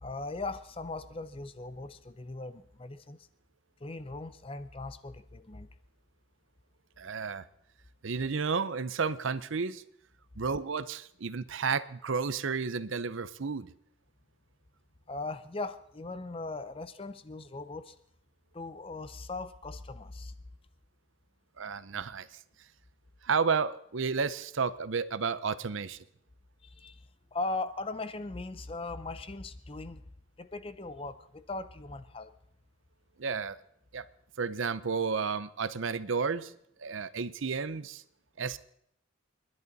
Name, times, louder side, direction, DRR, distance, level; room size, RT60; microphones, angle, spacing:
voice 1, 0.0-3.2 3.8-5.7 15.1-17.9 18.5-20.3 26.6-27.1 27.3-30.0 30.4-32.3, left 3 dB, 25° left, 13 dB, 0.6 m, -39 dB
voice 2, 7.0-7.4 8.0-9.8 10.4-13.7 21.6-22.3 23.2-26.0 33.2-33.6 33.9-34.0 34.4-36.5 36.8-38.0 38.4-38.6, right 5 dB, 70° right, 16 dB, 0.7 m, -32 dB
30.0 x 11.0 x 4.1 m, 0.73 s
head